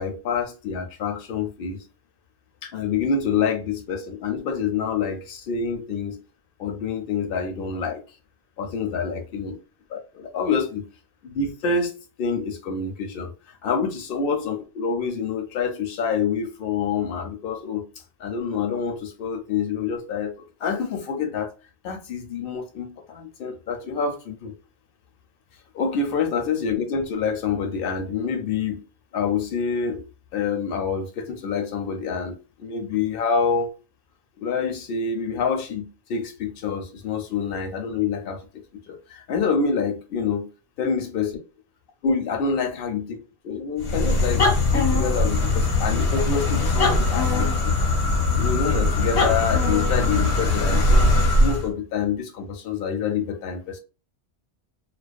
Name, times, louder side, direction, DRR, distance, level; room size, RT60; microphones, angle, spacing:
voice 1, 0.0-1.8 2.6-6.2 6.6-8.0 8.6-9.5 9.9-10.8 11.2-11.9 12.2-13.3 13.6-17.8 18.2-21.5 21.8-24.6 25.7-28.8 29.1-30.0 30.3-33.7 34.4-38.4 38.7-40.5 40.8-41.3 42.0-45.5 45.8-47.9 48.4-51.1 51.4-53.8, left 5 dB, 65° left, 0.7 m, -27 dB
sound 1, 43.8-51.7, left 2 dB, 85° left, 1.1 m, -21 dB
2.4 x 2.1 x 2.4 m
omnidirectional pair, 1.1 m